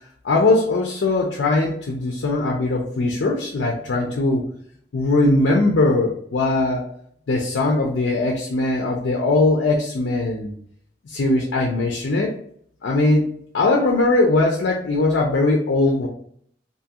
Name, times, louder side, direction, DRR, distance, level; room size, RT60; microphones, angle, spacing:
voice 1, 0.2-4.5 4.9-6.8 7.3-10.5 11.1-12.3 12.8-16.1, left 2 dB, 75° left, 1 dB, 0.5 m, -20 dB
2.7 x 2.3 x 2.7 m, 0.64 s
head